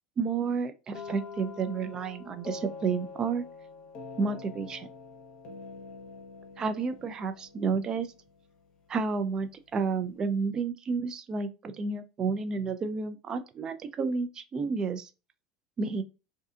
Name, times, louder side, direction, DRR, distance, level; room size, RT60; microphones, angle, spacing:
voice 1, 0.2-3.4 4.2-4.9 6.6-8.1 8.9-15.1 15.8-16.0, right 5 dB, 35° right, 0.4 m, -31 dB
sound 1, 0.9-8.7, left 4 dB, 50° left, 0.7 m, -45 dB
2.6 x 2.3 x 2.4 m
hypercardioid pair, 75°, 2 cm